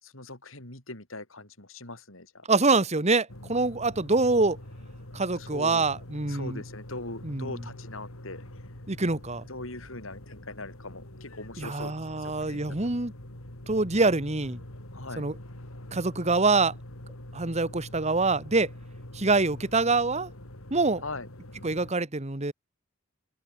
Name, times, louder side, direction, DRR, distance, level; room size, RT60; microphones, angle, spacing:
voice 1, 0.0-2.5 5.4-5.8 6.3-8.4 9.5-11.9 12.2-12.8 14.9-15.3 21.0-21.3, left 2 dB, 65° left, 6.1 m, -41 dB
voice 2, 2.5-4.6 5.1-6.6 7.2-7.5 8.9-9.4 11.6-13.1 13.7-14.6 15.2-15.3 15.9-16.7 17.3-18.7 19.1-20.3 20.7-21.0 21.6-22.5, right 3 dB, 30° right, 1.6 m, -25 dB
sound 1, 3.3-21.9, left 1 dB, 90° left, 4.0 m, -44 dB
open air
head